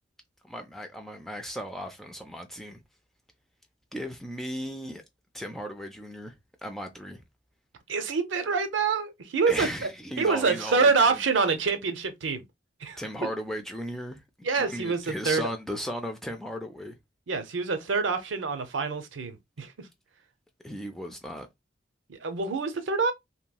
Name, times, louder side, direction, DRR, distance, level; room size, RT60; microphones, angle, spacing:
voice 1, 0.4-2.8 3.9-5.0 5.3-6.3 6.6-7.2 9.5-11.2 13.0-14.2 14.5-16.9 20.6-21.5, equal, ahead, 0.4 m, -36 dB
voice 2, 7.9-9.7 10.2-12.4 12.8-13.0 14.4-15.5 17.3-19.9 22.1-23.1, right 4 dB, 85° right, 0.6 m, -26 dB
3.0 x 2.7 x 2.2 m
head